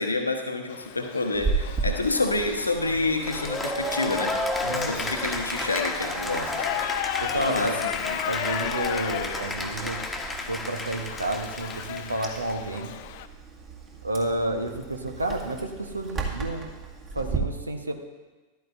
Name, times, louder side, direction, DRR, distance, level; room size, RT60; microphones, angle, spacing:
voice 1, 0.0-4.3 4.7-6.8 7.4-8.2, left 2 dB, 80° left, 4 dB, 1.1 m, -28 dB
Shout / Livestock farm animals working animals, 0.7-13.3, left 12 dB, 50° left, 0.5 m, -35 dB
Chewing mastication, 1.3-17.4, right 4 dB, 30° right, 2.0 m, -37 dB
Cheering / Applause, 3.2-12.8, left 2 dB, 5° left, 1.2 m, -32 dB
voice 2, 4.6-5.2 7.2-7.8 8.2-10.0 10.5-12.9 14.0-16.7 17.1-17.9, right 1 dB, 80° right, 5 dB, 1.0 m, -30 dB
13.5 x 12.5 x 2.7 m, 1.3 s
figure-of-eight pair, 90°, 0 cm